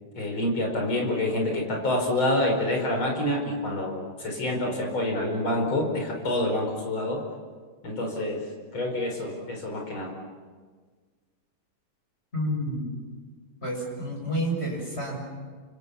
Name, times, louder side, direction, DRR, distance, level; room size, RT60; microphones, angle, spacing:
voice 1, 0.2-7.2 7.8-8.4 8.7-10.1, left 1 dB, 70° left, 1 dB, 5.9 m, -27 dB
voice 2, 12.3-12.9 13.6-15.2, equal, 30° left, 0 dB, 7.3 m, -29 dB
29.5 x 26.5 x 7.1 m, 1.5 s
omnidirectional pair, 2.3 m